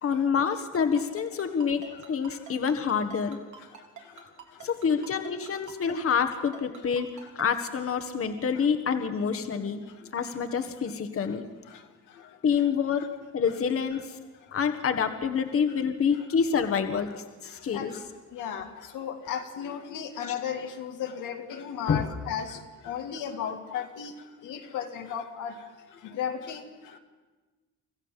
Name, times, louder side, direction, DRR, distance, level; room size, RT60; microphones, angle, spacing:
voice 1, 0.0-3.4 4.6-7.1 7.3-9.8 10.1-11.4 12.4-13.0 13.3-14.2 14.5-17.1 17.4-17.9 20.2-20.3 21.9-22.0, left 6 dB, 50° left, 7 dB, 1.6 m, -27 dB
Ringtone, 0.7-7.4, right 8 dB, 75° right, 3.6 m, -45 dB
voice 2, 18.3-18.7 18.9-22.6 22.8-24.1 24.4-25.5 26.1-26.6, left 8 dB, 85° left, 4 dB, 2.0 m, -34 dB
25.5 x 15.0 x 7.4 m, 1.3 s
cardioid pair, 90°, 30 cm